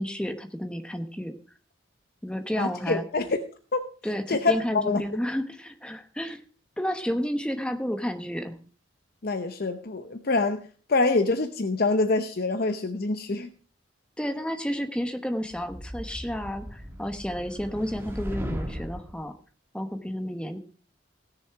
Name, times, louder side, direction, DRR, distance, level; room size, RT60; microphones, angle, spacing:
voice 1, 0.0-1.3 2.2-3.0 4.0-6.4 6.8-8.6 14.2-19.3 19.7-20.6, equal, 5° left, 7 dB, 1.1 m, -31 dB
voice 2, 2.5-3.8 4.3-5.0 9.2-13.5, left 3 dB, 50° left, 8 dB, 0.7 m, -26 dB
sound 1, 15.5-19.2, equal, 10° right, 1.4 m, -37 dB
16.5 x 6.9 x 4.7 m, 0.40 s
head